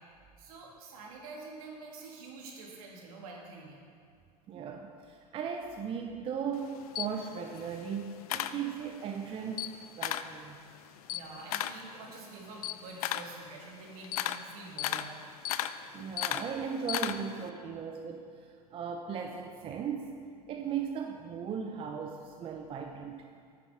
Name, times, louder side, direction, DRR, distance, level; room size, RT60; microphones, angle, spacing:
voice 1, 0.4-3.8 11.1-15.2, right 3 dB, 60° right, -1 dB, 1.9 m, -47 dB
voice 2, 4.5-10.6 15.9-23.3, right 7 dB, 25° right, 3 dB, 0.5 m, -37 dB
Camera, 6.5-9.1 9.5-10.4 10.7-17.5, left 12 dB, 65° left, 0.4 m, -36 dB
9.2 x 6.1 x 4.6 m, 2.2 s
hypercardioid pair, 90°, 20 cm